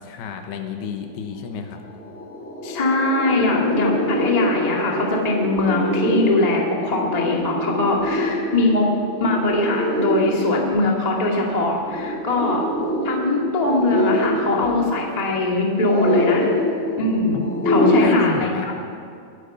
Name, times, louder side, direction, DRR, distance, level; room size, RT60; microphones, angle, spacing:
voice 1, 0.0-1.8 17.3-18.7, left 7 dB, 80° left, 5 dB, 3.0 m, -29 dB
sound 1, 1.5-1.6 1.9-18.1, left 1 dB, 5° left, 1.4 m, -25 dB
voice 2, 2.6-8.9 9.2-12.6 13.0-16.5 17.0-18.5, left 2 dB, 40° left, -1 dB, 0.5 m, -21 dB
21.0 x 10.0 x 5.5 m, 2.3 s
omnidirectional pair, 4.7 m